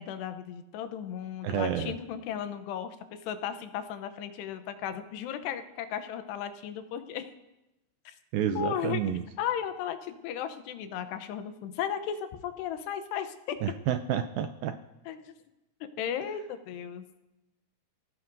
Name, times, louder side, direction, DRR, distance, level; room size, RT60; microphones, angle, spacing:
voice 1, 0.0-7.3 8.1-8.2 8.6-9.0 9.4-13.6 15.1-15.4 16.0-17.0, left 9 dB, 90° left, 10 dB, 3.0 m, -35 dB
voice 2, 1.4-1.9 8.3-9.2 13.6-14.8, right 9 dB, 80° right, 8 dB, 2.1 m, -29 dB
23.0 x 16.5 x 2.6 m, 0.97 s
omnidirectional pair, 4.7 m